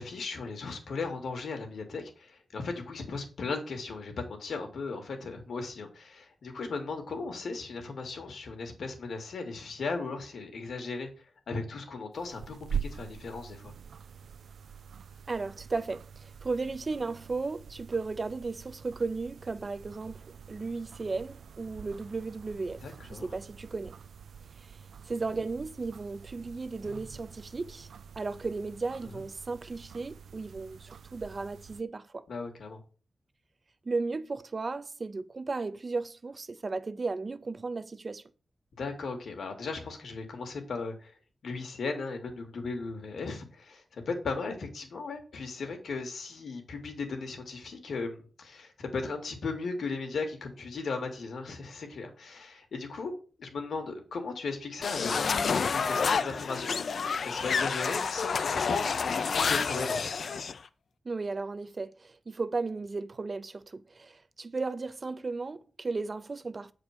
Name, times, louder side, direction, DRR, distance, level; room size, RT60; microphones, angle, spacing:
voice 1, 0.0-13.7 22.8-23.3 32.3-32.8 38.8-41.1 41.4-53.1 53.4-56.9 57.2-60.1, left 4 dB, 85° left, 2.4 m, -37 dB
sound 1, 12.1-31.8, right 7 dB, 85° right, 0.5 m, -45 dB
voice 2, 15.3-22.8 23.1-23.9 25.1-27.9 28.2-32.3 33.9-38.3 61.0-66.7, right 3 dB, 40° right, 0.6 m, -35 dB
sound 2, 54.8-60.6, left 5 dB, 65° left, 0.6 m, -29 dB
8.6 x 4.9 x 6.0 m
wide cardioid pair, 125°, 0 cm